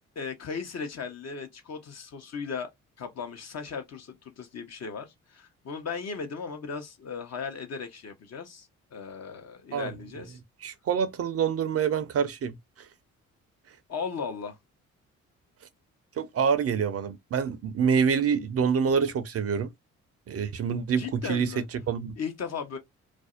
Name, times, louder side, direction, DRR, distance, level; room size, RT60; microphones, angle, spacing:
voice 1, 0.2-2.7 3.0-10.4 13.9-14.6 21.0-21.6 22.2-22.8, left 5 dB, 50° left, 0.8 m, -37 dB
voice 2, 10.6-12.6 16.2-19.7 20.3-22.1, right 6 dB, 45° right, 0.5 m, -26 dB
2.5 x 2.0 x 2.4 m
hypercardioid pair, 50°, 34 cm